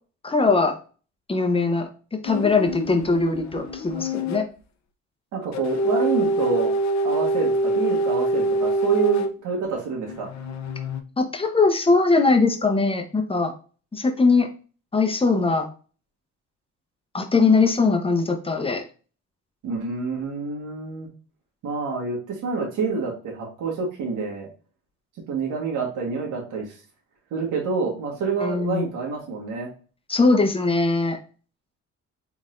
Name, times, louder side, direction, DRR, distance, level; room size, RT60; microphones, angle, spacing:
voice 1, 0.2-0.8 1.3-1.9 2.2-4.4 11.2-13.5 13.9-14.5 14.9-15.7 17.1-18.8 28.4-28.9 30.1-31.2, left 3 dB, 20° left, 6 dB, 0.8 m, -20 dB
sound 1, 2.3-4.4 5.5-9.4 10.1-11.0, right 1 dB, 65° left, 0.7 m, -25 dB
voice 2, 5.3-6.7 7.0-10.3 19.6-21.1 21.6-24.5 25.3-26.8 27.3-29.7, right 5 dB, 85° right, 0 dB, 1.4 m, -27 dB
4.0 x 3.5 x 2.5 m, 0.37 s
cardioid pair, 90°, 30 cm